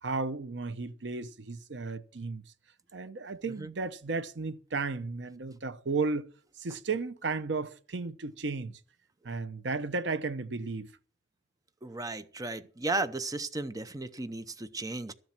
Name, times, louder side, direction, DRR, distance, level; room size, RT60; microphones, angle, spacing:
voice 1, 0.0-2.4 2.9-6.3 6.6-8.8 9.2-10.9, right 4 dB, 85° right, 0.8 m, -34 dB
voice 2, 11.8-15.1, right 2 dB, 20° right, 0.7 m, -35 dB
13.5 x 7.4 x 7.4 m
head